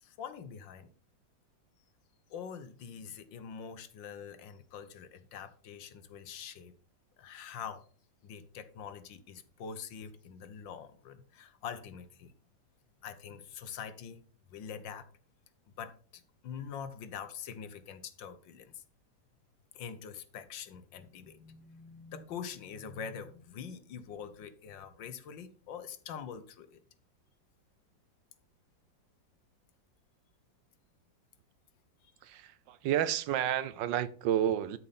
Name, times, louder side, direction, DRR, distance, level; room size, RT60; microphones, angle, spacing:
voice 1, 0.0-0.9 2.3-6.7 7.2-7.8 8.2-12.3 13.0-14.2 14.5-15.1 15.8-18.8 19.7-26.8 32.0-32.1, left 7 dB, 75° left, 1.7 m, -44 dB
voice 2, 32.2-34.8, right 11 dB, 75° right, 1.4 m, -30 dB
12.5 x 7.0 x 4.2 m
omnidirectional pair, 2.0 m